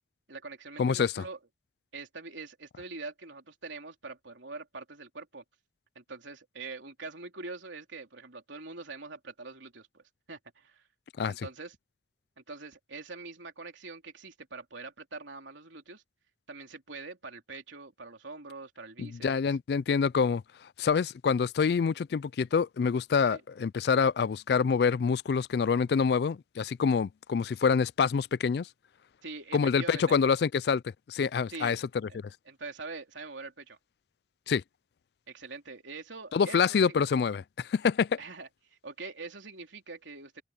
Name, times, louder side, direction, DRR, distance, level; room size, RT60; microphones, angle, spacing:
voice 1, 0.3-1.4 1.9-5.4 5.9-10.8 11.2-11.8 12.4-16.0 16.5-19.6 23.3-23.4 29.2-30.2 31.5-31.8 32.1-32.2 32.4-33.8 35.3-37.0 38.2-40.4, right 3 dB, 80° right, 3.5 m, -44 dB
voice 2, 0.8-1.2 11.2-11.5 19.0-20.4 20.8-28.7 29.5-30.8 31.1-31.8 34.5-34.6 36.3-38.2, left 6 dB, 55° left, 0.3 m, -26 dB
head